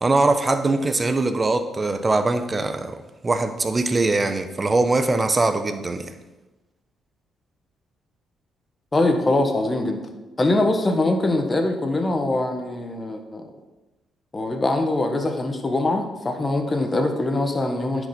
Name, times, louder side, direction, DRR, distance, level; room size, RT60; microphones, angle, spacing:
voice 1, 0.0-3.0 3.2-6.1, right 3 dB, 25° right, 9 dB, 0.9 m, -22 dB
voice 2, 8.9-10.0 10.4-13.5 14.3-18.1, left 2 dB, 25° left, 5 dB, 1.3 m, -23 dB
10.0 x 5.2 x 5.4 m, 1.1 s
cardioid pair, 90°, 0 cm